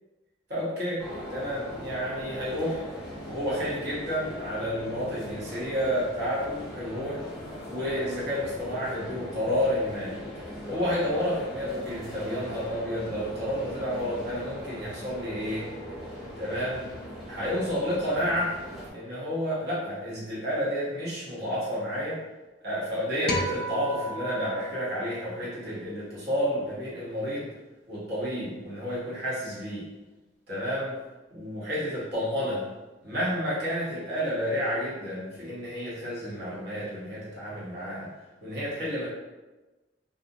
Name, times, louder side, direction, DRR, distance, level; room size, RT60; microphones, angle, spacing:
voice 1, 0.5-1.0 1.3-2.9 3.2-7.2 7.7-10.2 10.6-15.7 16.4-16.9 17.3-18.6 18.9-22.2 22.6-27.5 27.9-29.8 30.5-31.0 31.3-32.6 33.0-38.1 38.4-39.1, equal, 65° right, -8 dB, 0.9 m, -30 dB
sound 1, 1.0-18.9, equal, 5° right, 0.8 m, -40 dB
sound 2, 23.3-25.8, equal, 55° left, 0.3 m, -34 dB
2.4 x 2.0 x 2.6 m, 1.1 s
head